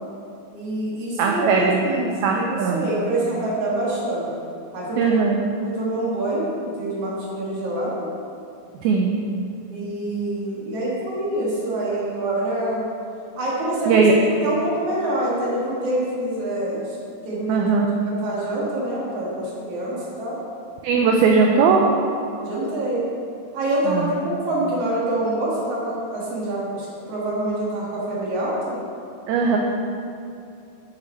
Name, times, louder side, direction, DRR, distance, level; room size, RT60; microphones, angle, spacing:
voice 1, 0.5-4.3 4.7-5.2 5.6-8.1 9.7-12.8 13.3-14.1 14.4-17.0 17.2-17.7 18.0-20.4 21.4-21.5 22.4-23.1 23.5-28.8, right 1 dB, 55° right, -5 dB, 1.8 m, -26 dB
voice 2, 1.2-1.9 2.2-2.9 5.0-5.4 8.8-9.2 13.9-14.1 17.5-17.9 20.8-21.8 23.9-24.1 29.3-29.6, right 5 dB, 90° right, 1 dB, 2.1 m, -19 dB
11.0 x 6.1 x 4.4 m, 2.5 s
omnidirectional pair, 5.1 m